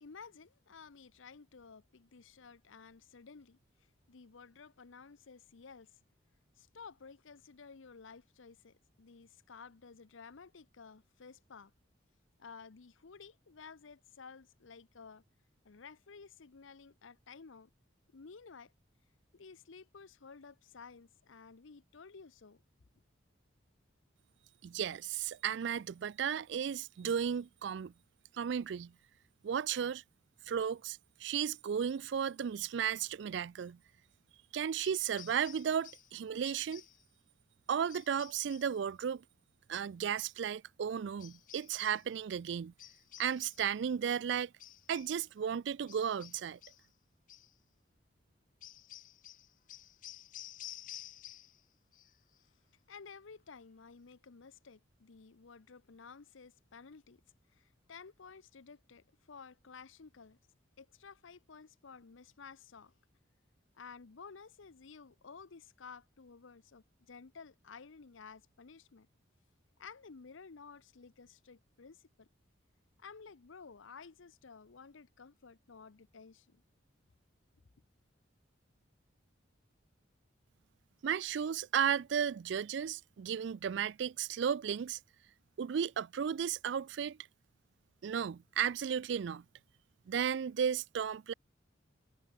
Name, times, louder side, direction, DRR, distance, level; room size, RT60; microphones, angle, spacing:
voice 1, 0.0-5.9 6.6-11.7 12.4-15.2 15.6-17.7 18.1-18.7 19.3-22.6 52.9-57.2 57.5-60.4 60.8-62.9 63.7-69.1 69.8-72.3 73.0-76.6, left 5 dB, 80° left, 0.7 m, -54 dB
voice 2, 24.6-27.9 28.3-28.9 29.4-30.0 30.5-33.8 34.5-36.8 37.7-39.2 39.7-42.7 43.2-44.5 44.9-46.6 81.0-85.0 85.6-87.2 88.0-89.4 90.1-91.3, right 8 dB, 65° right, 0.3 m, -34 dB
sound 1, 34.8-36.1 36.4-37.0 37.9-38.8 41.2-42.1 42.8-43.7 44.6-45.2 45.9-46.9 47.3-47.5 48.6-51.6 51.9-52.4, left 13 dB, 40° left, 0.9 m, -52 dB
head